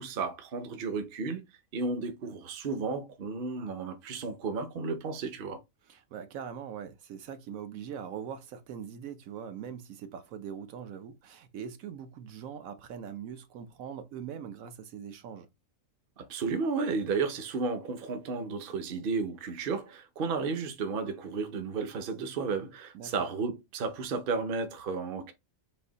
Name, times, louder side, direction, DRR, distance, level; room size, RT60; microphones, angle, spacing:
voice 1, 0.0-1.4 1.7-5.6 16.2-25.3, right 4 dB, 50° right, 0.8 m, -33 dB
voice 2, 5.9-15.5 22.9-23.3, right 8 dB, 75° right, 1.1 m, -42 dB
4.1 x 2.6 x 3.8 m
omnidirectional pair, 1.4 m